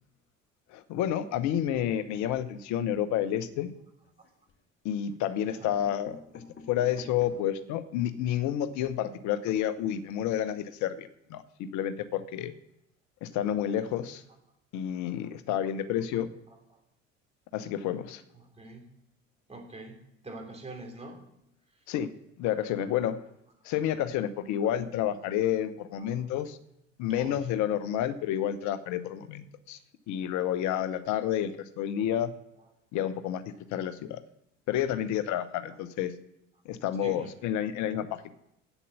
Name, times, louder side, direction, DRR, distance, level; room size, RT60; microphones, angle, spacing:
voice 1, 0.7-3.7 4.8-12.5 13.2-14.2 14.7-16.3 17.5-18.2 21.9-22.1 22.4-23.2 23.6-26.6 27.0-29.8 30.1-32.3 32.9-33.4 33.7-34.2 34.7-36.1 36.6-38.3, left 10 dB, 50° left, 12 dB, 0.9 m, -30 dB
sound 1, 4.0-4.7 5.4-5.5 5.8-7.6 8.1-8.2 8.4-8.5 8.8-8.9, left 4 dB, 30° left, 2.0 m, -50 dB
voice 2, 5.4-5.7 18.3-18.9 19.5-20.0 20.2-21.2 26.0-26.2 27.1-27.4 37.0-37.3, right 2 dB, 15° right, 2 dB, 3.0 m, -44 dB
8.2 x 7.0 x 8.5 m, 0.82 s
figure-of-eight pair, 60°, 37 cm